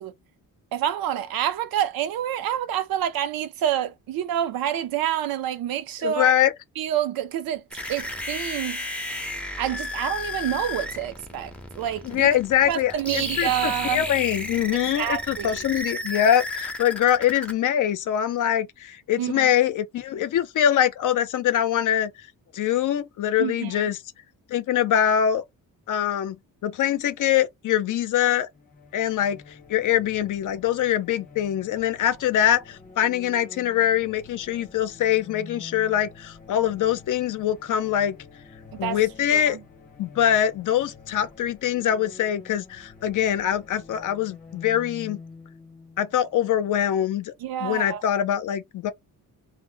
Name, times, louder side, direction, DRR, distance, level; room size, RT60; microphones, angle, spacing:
voice 1, 0.7-6.3 6.8-7.6 7.9-8.8 9.6-12.3 12.7-14.0 15.0-15.5 19.2-19.5 23.4-23.8 38.7-39.0 39.3-39.6 47.4-48.0, right 11 dB, 80° right, 0.5 m, -28 dB
voice 2, 6.0-6.5 12.0-22.1 22.5-24.0 24.5-25.4 25.9-26.4 26.6-28.5 28.9-29.4 29.7-38.2 38.8-39.6 40.0-45.2 46.0-47.3 47.6-48.9, left 10 dB, 60° left, 0.6 m, -23 dB
sound 1, 7.7-17.5, left 1 dB, 5° left, 0.5 m, -33 dB
sound 2, 28.5-47.1, left 4 dB, 25° left, 0.8 m, -47 dB
2.1 x 2.1 x 3.7 m
cardioid pair, 130°, 35 cm